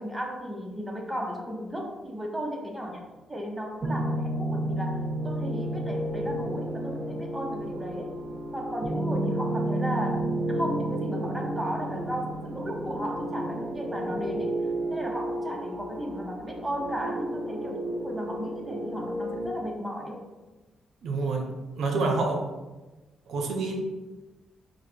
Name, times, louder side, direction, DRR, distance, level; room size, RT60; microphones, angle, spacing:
voice 1, 0.0-3.0 3.3-8.2 8.5-14.6 14.9-20.3, equal, 15° right, 0 dB, 0.8 m, -35 dB
sound 1, 3.8-19.5, right 1 dB, 45° right, 1.0 m, -31 dB
voice 2, 21.0-21.4 21.7-22.4 23.3-23.7, right 3 dB, 75° right, 2 dB, 0.6 m, -27 dB
4.6 x 2.1 x 4.4 m, 1.2 s
cardioid pair, 80°, 0 cm